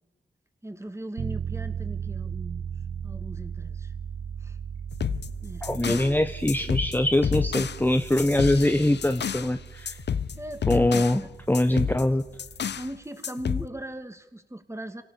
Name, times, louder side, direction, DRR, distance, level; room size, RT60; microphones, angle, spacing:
voice 1, 0.6-2.7 3.0-3.9 4.4-4.6 5.4-5.7 10.4-11.0 11.2-11.3 11.6-11.9 12.8-15.0, right 1 dB, 15° right, 8 dB, 2.6 m, -39 dB
sound 1, 1.2-13.0, right 7 dB, 70° right, 0.7 m, -37 dB
sound 2, 4.9-6.1 6.5-9.5 9.9-11.2 11.5-12.9 13.2-13.7, left 7 dB, 80° left, 0.7 m, -31 dB
voice 2, 5.6-10.0 10.7-11.2 11.5-12.2, left 1 dB, 10° left, 8 dB, 1.1 m, -23 dB
26.5 x 18.0 x 7.1 m, 1.1 s
cardioid pair, 50°, 18 cm